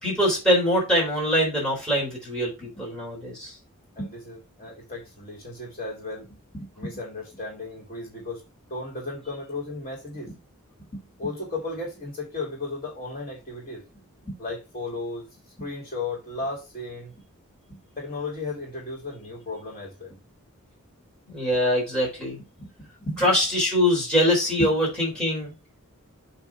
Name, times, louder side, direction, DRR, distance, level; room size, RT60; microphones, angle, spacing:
voice 1, 0.0-3.6 21.3-22.4 23.2-25.5, equal, 5° left, -3 dB, 3.6 m, -23 dB
voice 2, 4.0-8.4 8.7-10.4 10.9-13.8 14.2-15.3 15.6-17.1 17.7-20.2 22.3-22.7 23.0-23.3 24.6-24.8, left 2 dB, 30° left, -1 dB, 2.8 m, -35 dB
8.1 x 3.2 x 4.5 m, 0.28 s
head